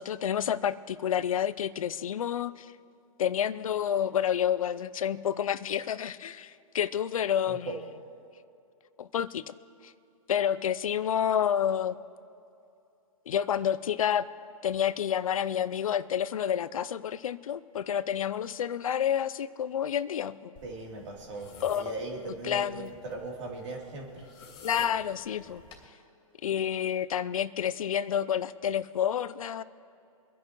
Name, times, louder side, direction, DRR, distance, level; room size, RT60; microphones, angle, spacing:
voice 1, 0.0-2.7 3.2-7.7 9.0-9.5 9.8-9.9 10.3-12.0 13.3-14.3 14.6-20.5 21.6-22.9 24.6-25.6 26.4-29.6, left 9 dB, 70° left, 16 dB, 0.6 m, -29 dB
voice 2, 7.5-7.8 20.6-24.2, right 3 dB, 55° right, -1 dB, 3.2 m, -39 dB
sound 1, 20.6-25.9, left 3 dB, 25° left, 3.0 m, -51 dB
25.0 x 10.5 x 3.1 m, 2.6 s
hypercardioid pair, 130°, 18 cm